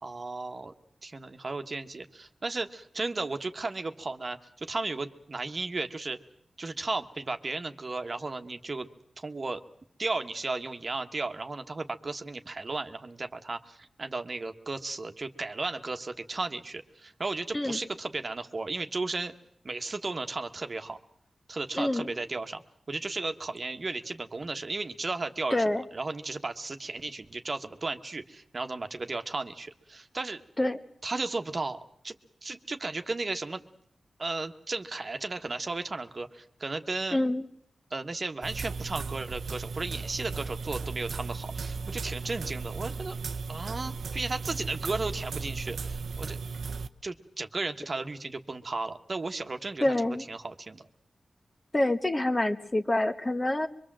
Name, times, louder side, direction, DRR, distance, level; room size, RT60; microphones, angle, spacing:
voice 1, 0.0-0.7 1.0-6.2 6.6-8.9 9.2-9.6 10.0-19.3 19.6-21.0 21.5-22.6 22.9-25.6 25.9-30.4 31.0-31.8 32.0-32.1 32.4-33.6 34.2-37.2 37.9-43.1 43.5-46.4 47.0-50.8, right 3 dB, 40° right, 7 dB, 1.4 m, -34 dB
voice 2, 21.7-22.1 25.5-25.8 30.6-30.8 37.1-37.4 49.8-50.2 51.7-53.7, left 1 dB, 25° left, 8 dB, 1.2 m, -26 dB
sound 1, 38.4-46.9, right 4 dB, 85° right, 0.9 m, -36 dB
24.0 x 23.5 x 7.6 m, 0.65 s
wide cardioid pair, 95°, 0 cm